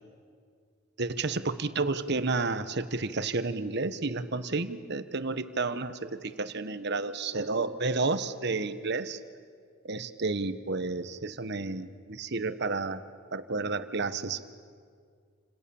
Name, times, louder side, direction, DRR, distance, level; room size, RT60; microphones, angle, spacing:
voice 1, 1.0-9.2 9.8-13.0 13.3-14.4, right 3 dB, 55° right, 11 dB, 1.2 m, -31 dB
29.0 x 26.5 x 7.1 m, 2.1 s
head